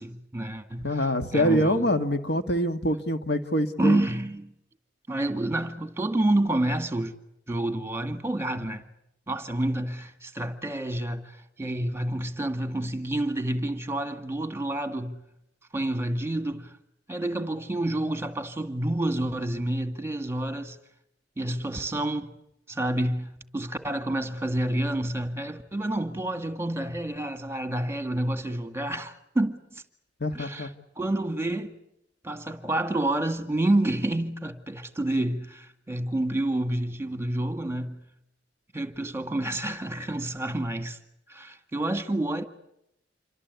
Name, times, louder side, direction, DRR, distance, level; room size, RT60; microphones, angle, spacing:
voice 1, 0.0-1.9 3.8-4.5 5.1-7.1 7.5-8.9 9.3-15.2 15.7-16.8 17.1-20.8 21.4-22.3 22.7-29.8 30.3-30.7 31.0-31.7 32.2-38.0 38.7-41.0 41.3-42.4, right 1 dB, 15° right, 2.0 m, -29 dB
voice 2, 0.8-4.0 30.2-30.7, equal, 65° left, 1.9 m, -25 dB
28.0 x 24.5 x 8.3 m
head